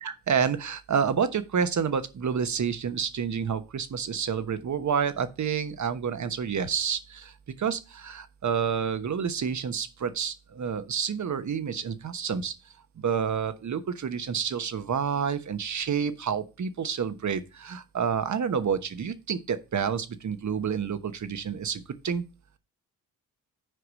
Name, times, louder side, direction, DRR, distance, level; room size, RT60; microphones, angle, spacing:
voice 1, 0.0-12.5 13.0-22.3, right 7 dB, 50° right, 1.1 m, -29 dB
7.8 x 4.9 x 6.3 m
cardioid pair, 70°, 37 cm